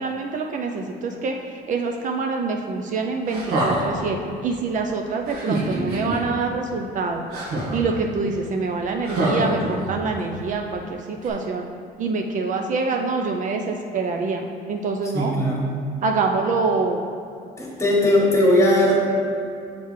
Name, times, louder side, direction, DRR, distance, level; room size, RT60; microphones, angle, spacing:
voice 1, 0.0-1.4 1.7-7.2 7.7-11.7 12.0-15.3 16.0-17.1, right 4 dB, 50° right, 3 dB, 0.5 m, -25 dB
sound 1, 3.3-4.1 5.3-6.2 7.3-8.0 9.0-10.2 11.2-11.3, right 1 dB, 80° right, 1.3 m, -25 dB
voice 2, 15.1-15.8 17.6-19.0, left 1 dB, 15° left, -3 dB, 1.4 m, -19 dB
6.3 x 3.4 x 4.8 m, 2.5 s
cardioid pair, 110°, 17 cm